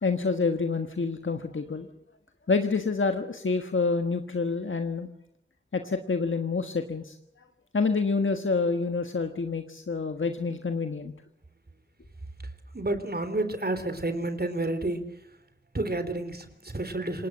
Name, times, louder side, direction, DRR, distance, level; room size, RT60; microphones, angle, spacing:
voice 1, 0.0-1.9 2.5-5.1 5.7-7.2 7.7-11.1, left 4 dB, 85° left, 6 dB, 1.5 m, -27 dB
voice 2, 12.7-15.4 15.7-17.3, right 2 dB, 50° right, 10 dB, 3.5 m, -30 dB
27.0 x 19.5 x 7.9 m, 0.76 s
wide cardioid pair, 40°, 20 cm